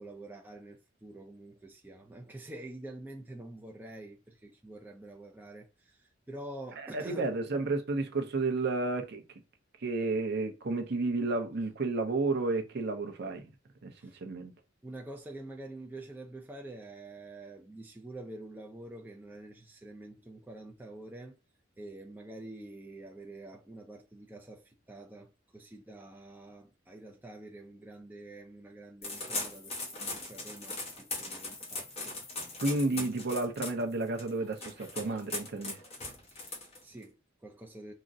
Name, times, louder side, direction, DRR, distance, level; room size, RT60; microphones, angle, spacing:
voice 1, 0.0-7.3 14.0-14.2 14.8-21.3 21.8-32.2 32.9-33.1 36.3-37.9, right 2 dB, 10° right, 0.4 m, -47 dB
voice 2, 6.8-9.2 9.8-13.5 13.8-14.5 32.6-35.8, right 3 dB, 60° right, 0.6 m, -31 dB
sound 1, 29.0-37.0, left 2 dB, 30° left, 1.0 m, -40 dB
3.6 x 2.1 x 2.6 m
head